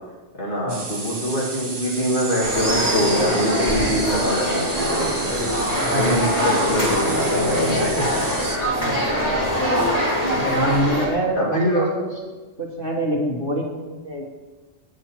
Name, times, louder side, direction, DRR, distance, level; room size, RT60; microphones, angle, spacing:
voice 1, 0.4-5.2 5.9-8.3 11.4-11.9, equal, 45° left, -4 dB, 2.6 m, -24 dB
sound 1, 0.7-8.6, right 3 dB, 25° right, 0.7 m, -30 dB
sound 2, 2.4-11.1, equal, 30° left, 2.4 m, -23 dB
voice 2, 5.8-6.3 10.4-12.2 12.6-14.3, right 1 dB, 50° right, -1 dB, 1.7 m, -26 dB
9.1 x 8.9 x 4.5 m, 1.2 s
omnidirectional pair, 1.2 m